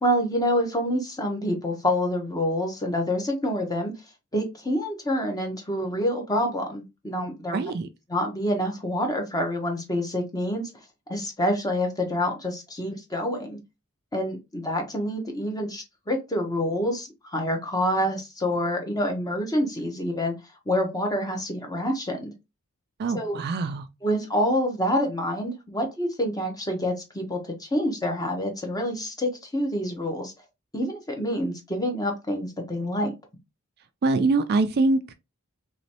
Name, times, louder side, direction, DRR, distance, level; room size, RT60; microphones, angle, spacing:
voice 1, 0.0-3.9 4.3-7.6 8.1-10.7 11.1-13.6 14.1-20.3 20.7-22.3 23.1-23.4 24.0-30.3 30.7-33.1, equal, 15° left, 0.9 m, -27 dB
voice 2, 7.5-7.9 23.0-23.9 34.0-35.1, right 3 dB, 45° right, 0.3 m, -24 dB
3.0 x 3.0 x 2.8 m
head